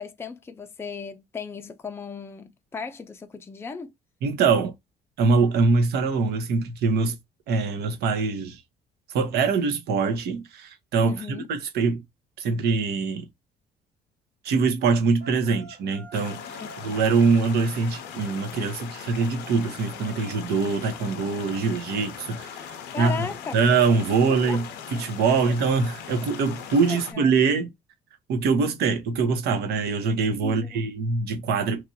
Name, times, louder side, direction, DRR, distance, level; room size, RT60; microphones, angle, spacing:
voice 1, 0.0-3.9 11.0-11.5 16.6-16.7 22.9-23.5 24.3-24.6 25.3-25.4 26.8-27.3 30.4-30.8, left 5 dB, 15° left, 0.4 m, -35 dB
voice 2, 4.2-4.7 5.2-7.2 7.5-8.6 9.1-12.0 12.4-13.3 14.4-16.4 16.8-22.5 23.0-23.3 23.5-24.7 24.9-27.7 28.3-31.9, right 4 dB, 70° right, 0.8 m, -23 dB
sound 1, 14.8-17.0, right 1 dB, 45° right, 1.0 m, -46 dB
sound 2, 16.1-27.1, left 8 dB, 85° left, 0.6 m, -40 dB
3.0 x 2.5 x 2.6 m
cardioid pair, 110°, 17 cm